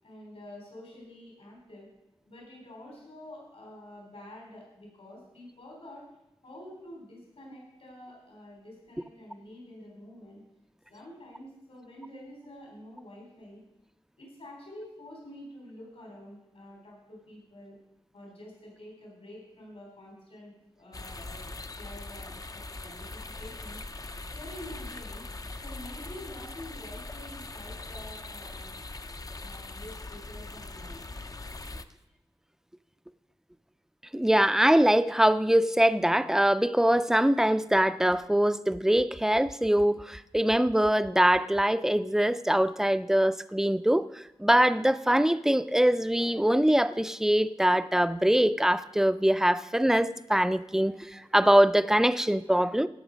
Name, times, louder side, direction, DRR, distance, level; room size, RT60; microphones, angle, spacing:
voice 1, 0.0-1.9 2.3-6.0 6.4-10.4 10.9-13.6 14.2-17.8 18.1-23.8 24.3-25.2 25.6-28.7 29.4-31.0, left 1 dB, 70° left, -2 dB, 3.8 m, -47 dB
sound 1, 20.9-31.8, left 2 dB, 35° left, 0.6 m, -41 dB
voice 2, 34.1-52.9, right 1 dB, 5° right, 13 dB, 0.5 m, -23 dB
17.0 x 6.0 x 5.2 m, 0.90 s
cardioid pair, 50°, 10 cm